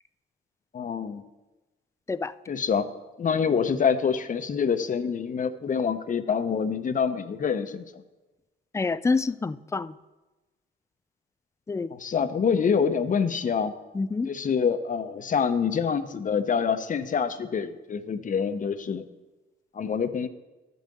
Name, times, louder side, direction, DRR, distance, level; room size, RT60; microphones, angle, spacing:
voice 1, 0.7-1.2 2.5-2.9 3.2-8.0 11.9-13.7 14.2-19.0 19.7-20.3, left 6 dB, 40° left, 0.7 m, -26 dB
voice 2, 8.7-9.9 11.7-11.9 13.9-14.3, left 4 dB, 15° left, 0.4 m, -27 dB
11.5 x 5.4 x 7.7 m
cardioid pair, 90°, 20 cm